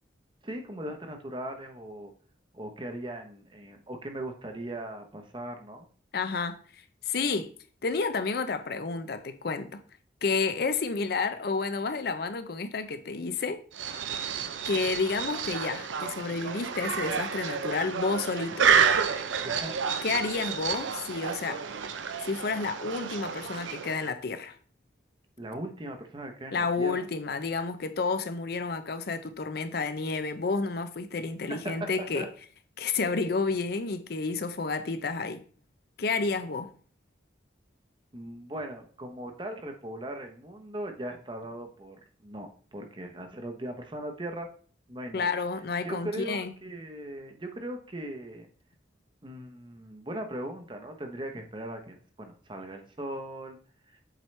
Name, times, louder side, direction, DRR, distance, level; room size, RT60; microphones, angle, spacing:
voice 1, 0.4-2.1 2.5-5.9 18.8-18.9 19.4-19.7 25.4-27.0 31.5-32.3 38.1-44.5 44.9-45.3 45.8-48.5 49.2-53.6 53.9-54.0, right 1 dB, 25° right, 0.8 m, -39 dB
voice 2, 6.1-7.5 7.8-9.8 10.2-13.6 14.7-18.7 20.0-21.6 22.2-24.6 26.5-32.3 32.8-35.4 36.0-36.7 45.1-46.5, left 4 dB, 55° left, 0.5 m, -30 dB
sound 1, 13.7-24.1, right 6 dB, 90° right, 0.6 m, -30 dB
7.5 x 4.5 x 3.2 m
head